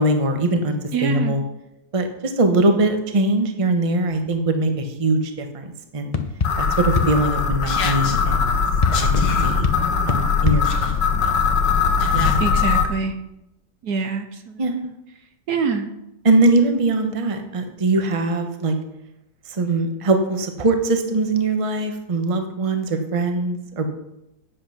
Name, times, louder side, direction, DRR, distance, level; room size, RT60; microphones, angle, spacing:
voice 1, 0.0-1.4 1.9-6.2 6.6-8.5 8.9-9.7 10.1-10.9 11.2-11.4 12.1-12.3 14.6-14.7 16.2-18.7 19.5-23.9, right 2 dB, 25° right, 6 dB, 0.9 m, -21 dB
voice 2, 0.9-1.4 12.4-13.1 13.8-14.6 15.5-15.9, right 5 dB, 65° right, 6 dB, 1.3 m, -24 dB
sound 1, 4.1-4.5 6.1-8.2 8.8-11.3, left 5 dB, 50° left, 0.4 m, -26 dB
sound 2, 6.4-12.9, left 5 dB, 75° left, 1.8 m, -20 dB
9.9 x 7.6 x 5.9 m, 0.90 s
omnidirectional pair, 2.0 m